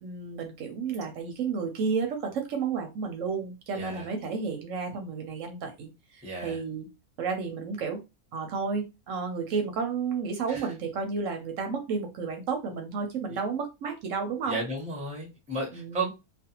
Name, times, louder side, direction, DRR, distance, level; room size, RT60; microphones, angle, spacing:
voice 1, 0.0-6.9 7.2-8.0 8.3-14.6 15.7-16.1, right 5 dB, 70° right, 0.9 m, -32 dB
voice 2, 3.7-4.1 6.2-6.6 10.5-10.6 13.3-13.4 14.5-16.1, right 2 dB, 5° right, 0.6 m, -33 dB
2.4 x 2.3 x 2.8 m
omnidirectional pair, 1.5 m